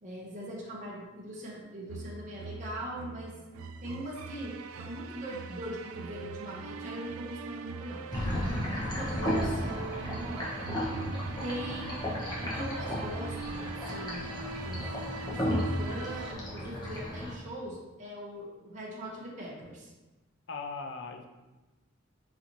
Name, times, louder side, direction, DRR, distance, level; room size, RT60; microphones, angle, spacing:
voice 1, 0.0-3.4 3.8-8.1 9.0-10.5 11.4-12.0 12.4-14.9 15.3-19.9, right 1 dB, 35° right, -5 dB, 0.8 m, -41 dB
sound 1, 1.9-16.3, right 4 dB, 85° right, 0.3 m, -42 dB
sound 2, 8.1-17.3, equal, 20° left, 0.8 m, -34 dB
voice 2, 8.3-8.6 20.5-21.3, left 3 dB, 55° left, 5 dB, 0.4 m, -39 dB
4.1 x 3.9 x 3.0 m, 1.1 s
head